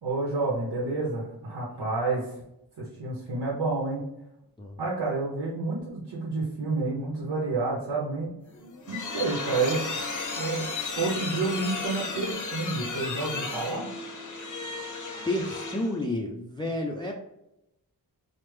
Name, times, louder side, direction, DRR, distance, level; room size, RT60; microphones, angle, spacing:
voice 1, 0.0-2.3 2.8-4.0 4.8-8.3 8.9-9.8 10.4-10.7 11.0-13.9, right 3 dB, 90° right, -5 dB, 0.9 m, -29 dB
sound 1, 8.5-16.0, left 3 dB, 45° left, 0.6 m, -34 dB
voice 2, 15.3-17.1, left 1 dB, 10° left, 1 dB, 0.3 m, -30 dB
3.2 x 2.0 x 3.1 m, 0.85 s
wide cardioid pair, 85°, 41 cm